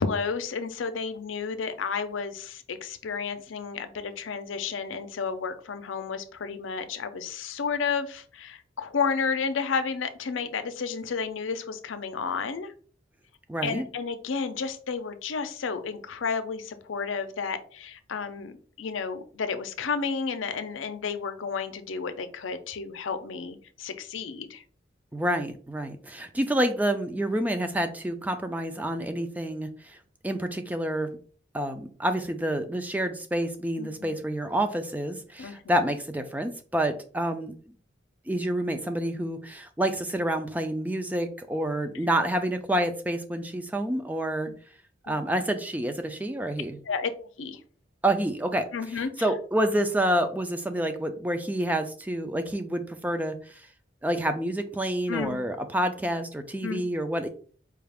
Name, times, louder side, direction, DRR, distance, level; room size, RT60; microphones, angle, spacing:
voice 1, 0.0-12.7 13.6-24.6 33.8-34.2 35.4-35.9 44.5-44.6 45.1-45.2 46.8-47.1 47.4-47.6 48.7-49.3 55.1-55.4 56.6-56.9, left 5 dB, 85° left, 9 dB, 0.5 m, -32 dB
voice 2, 13.5-13.9 25.1-30.0 30.2-31.2 31.5-37.5 38.3-44.5 45.1-46.8 48.0-48.7 48.9-53.7 54.0-57.3, right 1 dB, 10° right, 7 dB, 0.4 m, -28 dB
4.7 x 2.4 x 3.4 m, 0.43 s
head